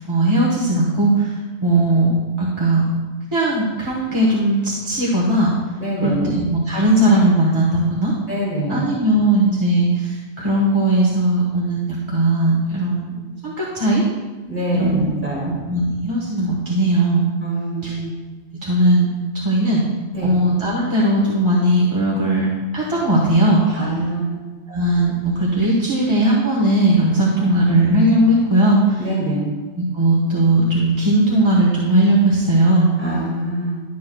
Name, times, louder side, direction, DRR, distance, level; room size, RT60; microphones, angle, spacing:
voice 1, 0.0-1.3 1.6-2.1 2.4-2.8 3.3-5.5 6.0-8.1 8.7-14.0 14.7-15.1 15.4-17.3 17.8-17.9 18.6-19.1 19.3-19.8 20.2-22.5 22.7-23.8 24.7-29.0 29.8-32.9, right 1 dB, 25° right, -5 dB, 1.2 m, -18 dB
voice 2, 5.8-6.3 8.3-8.9 14.5-15.6 17.4-18.1 20.1-20.3 23.7-24.3 29.0-29.5 33.0-33.8, right 1 dB, 10° right, -7 dB, 2.4 m, -24 dB
12.0 x 8.1 x 2.3 m, 1.3 s
omnidirectional pair, 1.2 m